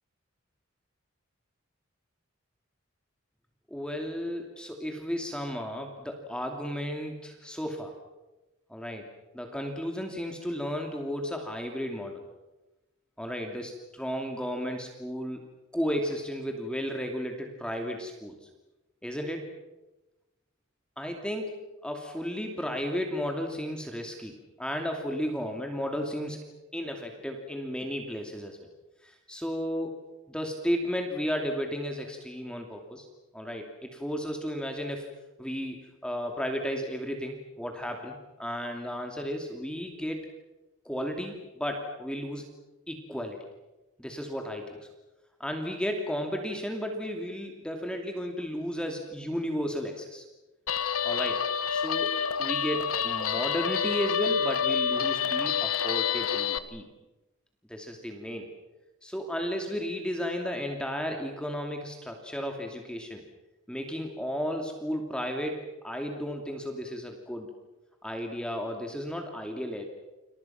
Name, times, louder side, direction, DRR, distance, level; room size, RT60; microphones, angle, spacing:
voice 1, 3.7-7.9 8.7-9.1 9.3-12.2 13.2-15.4 15.7-18.4 19.0-19.5 21.0-21.5 21.8-26.4 26.7-28.7 29.0-30.0 30.3-33.1 33.3-35.1 35.4-40.3 40.8-42.5 42.9-43.4 44.0-44.8 45.4-50.2 51.0-51.4 51.7-52.1 52.4-56.9 57.7-58.5 59.0-63.2 63.7-67.5 68.0-69.9, equal, 5° left, 3 dB, 2.7 m, -33 dB
Guitar, 50.7-56.6, left 7 dB, 85° left, 1.5 m, -28 dB
29.5 x 28.0 x 6.0 m, 1.0 s
head